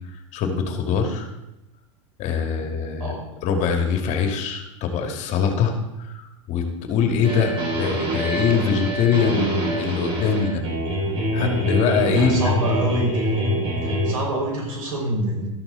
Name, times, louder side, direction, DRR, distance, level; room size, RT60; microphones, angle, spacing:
voice 1, 0.3-1.3 2.2-3.1 3.4-10.6 11.3-12.4, left 6 dB, 45° left, 4 dB, 2.5 m, -23 dB
sound 1, 7.2-14.1, equal, 35° right, 5.8 m, -25 dB
voice 2, 12.0-13.4 13.8-15.5, right 1 dB, 90° right, -1 dB, 5.6 m, -26 dB
13.0 x 12.5 x 4.1 m, 0.92 s
hypercardioid pair, 110°, 17 cm